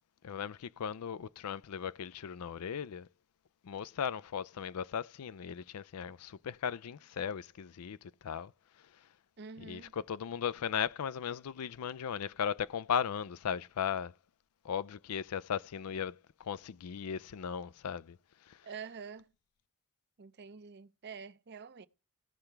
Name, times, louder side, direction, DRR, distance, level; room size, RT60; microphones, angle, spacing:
voice 1, 0.2-3.1 3.6-8.5 8.8-9.1 9.6-14.1 14.6-18.7, left 8 dB, 90° left, 0.4 m, -37 dB
voice 2, 9.4-9.9 18.6-19.3 20.2-21.9, right 6 dB, 50° right, 0.6 m, -47 dB
17.5 x 5.8 x 3.3 m
head